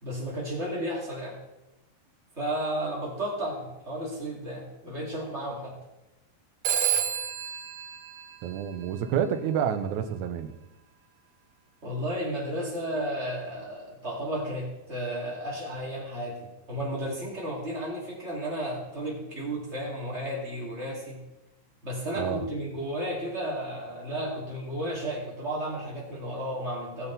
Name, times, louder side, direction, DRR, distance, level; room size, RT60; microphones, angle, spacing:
voice 1, 0.0-1.4 2.3-5.8 11.8-21.2 21.8-27.1, right 1 dB, 20° right, -4 dB, 2.3 m, -33 dB
Telephone, 6.6-9.1, right 9 dB, 65° right, 1.8 m, -30 dB
voice 2, 8.4-10.6 22.2-22.5, right 8 dB, 80° right, 7 dB, 1.7 m, -29 dB
18.0 x 7.2 x 4.1 m, 0.95 s
omnidirectional pair, 4.4 m